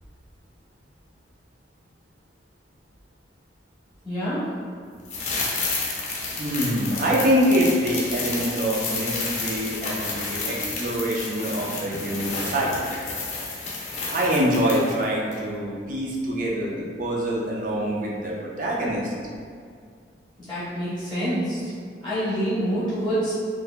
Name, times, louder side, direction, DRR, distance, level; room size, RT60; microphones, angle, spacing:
voice 1, 4.0-4.4 20.5-21.7 22.0-23.3, equal, 5° left, -12 dB, 0.9 m, -26 dB
sound 1, 5.1-15.0 15.3-15.4, left 3 dB, 40° left, 0.5 m, -31 dB
voice 2, 6.4-12.7 14.1-19.1, equal, 45° right, -3 dB, 0.6 m, -25 dB
4.5 x 2.7 x 2.2 m, 2.2 s
head